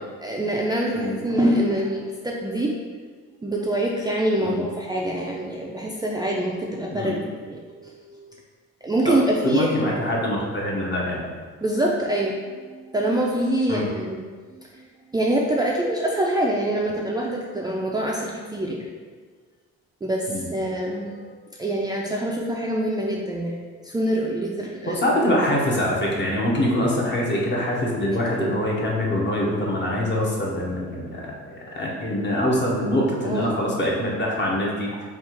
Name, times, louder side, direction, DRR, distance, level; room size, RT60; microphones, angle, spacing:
voice 1, 0.2-2.7 3.4-7.2 7.5-8.3 8.8-9.7 11.6-14.2 14.6-14.8 15.1-18.9 20.0-23.6 23.8-25.0 28.3-28.6 33.2-33.7, right 1 dB, 15° right, -3 dB, 0.4 m, -25 dB
voice 2, 9.0-11.3 13.7-13.9 20.3-20.5 24.9-34.9, left 1 dB, 35° left, -3 dB, 1.0 m, -24 dB
3.4 x 2.5 x 4.5 m, 1.5 s
cardioid pair, 90°, 30 cm